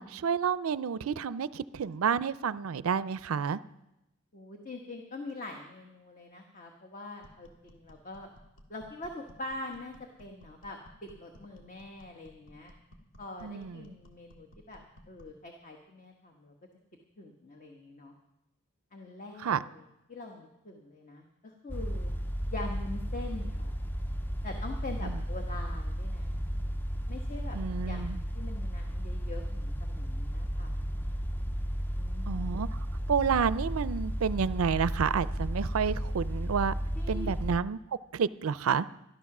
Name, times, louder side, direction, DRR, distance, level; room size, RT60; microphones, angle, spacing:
voice 1, 0.0-3.6 13.4-13.8 19.4-19.6 25.0-25.1 27.5-28.2 32.3-32.7 33.1-36.7 37.1-37.8 38.1-38.9, right 6 dB, 80° right, 17 dB, 0.4 m, -29 dB
voice 2, 4.3-8.3 8.7-12.7 13.2-16.5 17.2-18.1 18.9-22.1 22.5-23.8 24.4-26.3 27.1-27.6 27.8-30.8 31.9-32.5 36.9-37.3, left 2 dB, 40° left, 2 dB, 1.3 m, -44 dB
sound 1, 7.2-15.4, equal, 70° left, 1.8 m, -57 dB
sound 2, 21.7-37.6, equal, 10° left, 0.5 m, -34 dB
12.5 x 12.5 x 6.0 m, 0.89 s
head